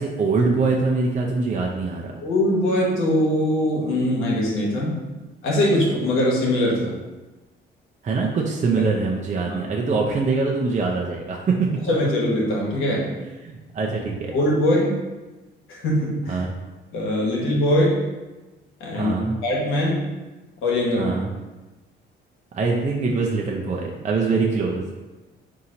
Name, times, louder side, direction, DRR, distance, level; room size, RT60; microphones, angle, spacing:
voice 1, 0.0-2.1 8.0-11.7 13.4-14.3 16.3-16.5 18.9-19.3 21.0-21.3 22.5-24.9, right 4 dB, 40° right, -1 dB, 0.6 m, -23 dB
voice 2, 2.2-5.0 5.4-7.0 8.8-8.9 9.4-9.6 11.9-13.1 14.3-14.9 15.7-16.4 16.9-18.0 18.8-20.0 20.6-21.2, left 1 dB, 85° left, -3 dB, 1.2 m, -22 dB
4.2 x 2.8 x 3.8 m, 1.2 s
cardioid pair, 90°, 20 cm